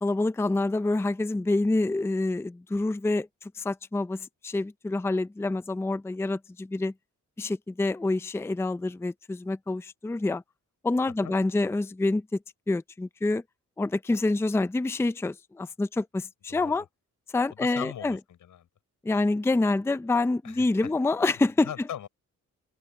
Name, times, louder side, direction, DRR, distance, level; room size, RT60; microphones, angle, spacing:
voice 1, 0.0-6.9 7.4-10.4 10.8-12.4 12.7-13.4 13.8-16.8 17.3-18.2 19.0-21.7, left 2 dB, 10° left, 0.5 m, -27 dB
voice 2, 17.5-18.7 20.4-20.9 21.6-22.1, left 10 dB, 90° left, 6.1 m, -40 dB
open air
wide cardioid pair, 125°, 30 cm